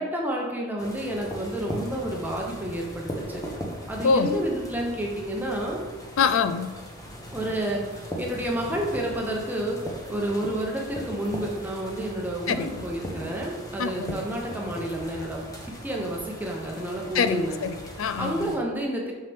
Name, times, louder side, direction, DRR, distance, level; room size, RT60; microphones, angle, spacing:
voice 1, 0.0-3.4 3.9-5.8 7.3-17.5 18.2-19.1, right 1 dB, 10° right, -2 dB, 0.8 m, -30 dB
sound 1, 0.8-18.6, equal, 15° left, 1.0 m, -39 dB
voice 2, 4.0-4.3 6.2-6.7 12.5-12.9 13.8-14.2 17.1-18.5, left 5 dB, 75° left, 11 dB, 0.4 m, -25 dB
6.4 x 5.6 x 3.5 m, 1.2 s
head